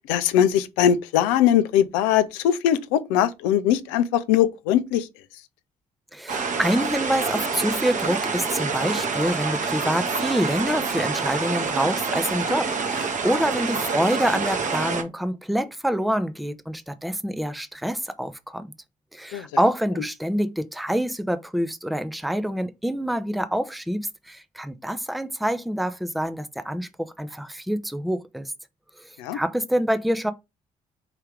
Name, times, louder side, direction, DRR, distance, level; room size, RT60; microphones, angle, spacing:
voice 1, 0.1-5.1 19.3-19.5 29.2-29.4, left 10 dB, 70° left, 0.5 m, -21 dB
voice 2, 6.1-18.7 19.1-28.5 29.0-30.3, equal, ahead, 0.6 m, -26 dB
sound 1, 6.3-15.0, right 4 dB, 45° right, 1.0 m, -27 dB
4.9 x 2.8 x 3.4 m
figure-of-eight pair, 45°, 18 cm